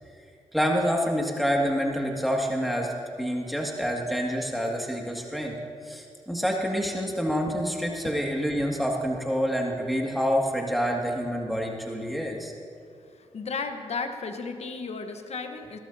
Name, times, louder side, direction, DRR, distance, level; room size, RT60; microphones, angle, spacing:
voice 1, 0.5-5.6 5.8-12.5, equal, ahead, 0 dB, 2.0 m, -27 dB
voice 2, 13.1-15.8, left 4 dB, 60° left, 7 dB, 1.0 m, -34 dB
17.0 x 13.0 x 2.7 m, 2.3 s
supercardioid pair, 45°, 12 cm